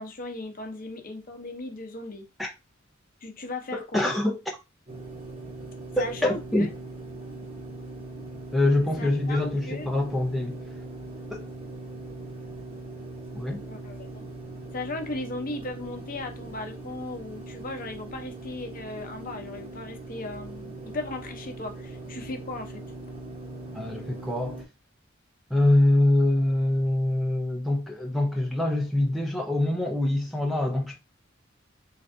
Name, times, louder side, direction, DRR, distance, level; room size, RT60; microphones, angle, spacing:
voice 1, 0.0-2.2 3.2-4.1 6.0-6.7 9.0-9.9 13.7-14.2 14.7-22.8, left 2 dB, 45° left, 0.8 m, -37 dB
voice 2, 3.7-4.4 6.0-6.7 8.5-10.6 11.3-11.5 13.3-13.6 23.7-24.6 25.5-31.0, left 1 dB, ahead, 0.5 m, -24 dB
sound 1, 4.9-24.6, right 2 dB, 30° right, 1.1 m, -40 dB
3.8 x 3.3 x 2.6 m
head